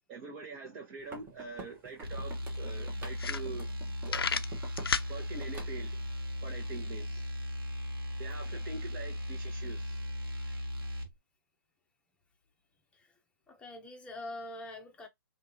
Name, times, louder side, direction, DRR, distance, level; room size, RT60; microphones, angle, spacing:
voice 1, 0.1-3.7 4.0-4.3 5.1-6.0 6.4-7.2 8.2-10.0, right 4 dB, 35° right, 1.4 m, -44 dB
sound 1, 1.0-5.0 5.2-6.1, right 3 dB, 15° right, 1.2 m, -48 dB
sound 2, 1.7-1.8 2.1-2.2 2.7-2.8 3.1-3.8 4.1-5.1, left 6 dB, 90° left, 0.5 m, -31 dB
sound 3, 2.0-11.1, left 1 dB, 80° right, 1.2 m, -37 dB
voice 2, 13.5-15.1, left 1 dB, 10° left, 0.9 m, -45 dB
3.5 x 2.8 x 2.9 m
hypercardioid pair, 140°, 12 cm